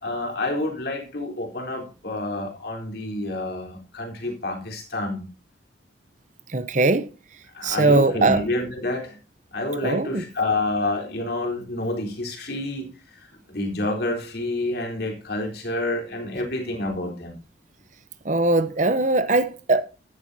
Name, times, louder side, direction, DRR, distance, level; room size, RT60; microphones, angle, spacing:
voice 1, 0.0-5.2 7.5-9.2 9.5-17.4, left 2 dB, 55° left, 3.9 m, -28 dB
voice 2, 6.5-7.1 7.6-8.4 9.8-10.2 18.2-19.8, right 2 dB, 40° right, 0.8 m, -20 dB
14.0 x 12.0 x 2.8 m
head